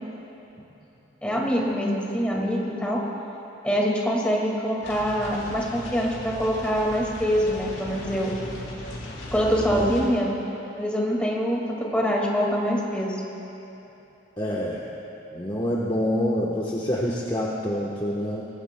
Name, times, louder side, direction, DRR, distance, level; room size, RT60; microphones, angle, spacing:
voice 1, 1.2-3.0 3.6-8.3 9.3-10.4 10.8-13.2, equal, 5° left, -3 dB, 2.0 m, -24 dB
sound 1, 4.8-10.1, left 1 dB, 90° left, 3.3 m, -37 dB
voice 2, 14.4-14.8 15.3-18.4, equal, 25° left, -5 dB, 1.0 m, -26 dB
23.0 x 18.5 x 2.2 m, 3.0 s
head